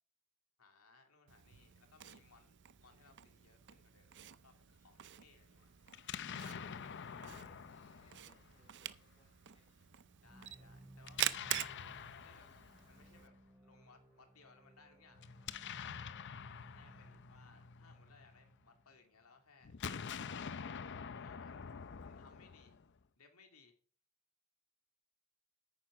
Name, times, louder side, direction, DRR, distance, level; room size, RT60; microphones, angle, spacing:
voice 1, 0.6-5.7 10.2-12.5 12.9-13.3 13.6-15.7 16.7-20.8 21.2-21.7 22.0-22.7 23.2-23.7, left 4 dB, 85° left, 4 dB, 2.4 m, -65 dB
Camera, 1.3-13.3, right 12 dB, 55° right, 0.6 m, -46 dB
voice 2, 5.8-6.4 7.1-10.0, left 1 dB, 25° left, 0 dB, 3.7 m, -73 dB
Explosion, 5.9-9.0 11.0-13.3 15.2-18.6 19.6-23.0, left 7 dB, 55° left, 0.6 m, -47 dB
sound 1, 10.1-20.1, right 1 dB, 10° right, 4.8 m, -62 dB
10.0 x 9.3 x 4.9 m, 0.43 s
head